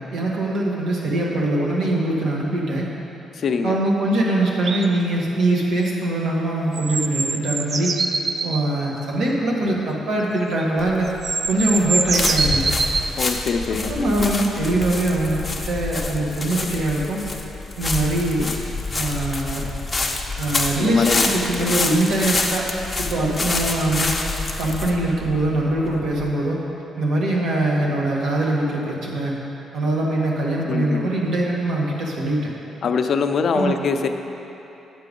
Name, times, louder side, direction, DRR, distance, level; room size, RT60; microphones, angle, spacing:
voice 1, 0.0-2.9 3.6-7.9 8.4-11.1 11.5-12.7 13.7-17.2 17.8-18.5 18.9-19.6 20.4-22.7 23.0-24.2 24.6-26.6 27.0-29.3 29.7-32.5 33.5-33.7, right 1 dB, 75° right, -3 dB, 1.7 m, -22 dB
voice 2, 3.3-3.8 13.2-14.3 20.8-21.2 21.5-21.7 30.7-31.1 32.8-34.1, left 5 dB, 55° left, 6 dB, 0.5 m, -23 dB
sound 1, 4.6-4.8 6.7-8.6 10.6-10.7 11.1-13.1 14.2-14.3, right 4 dB, 40° right, 0.4 m, -24 dB
sound 2, 10.8-26.3, left 3 dB, 15° left, 0.7 m, -27 dB
9.1 x 6.8 x 5.3 m, 2.9 s
cardioid pair, 135°, 0 cm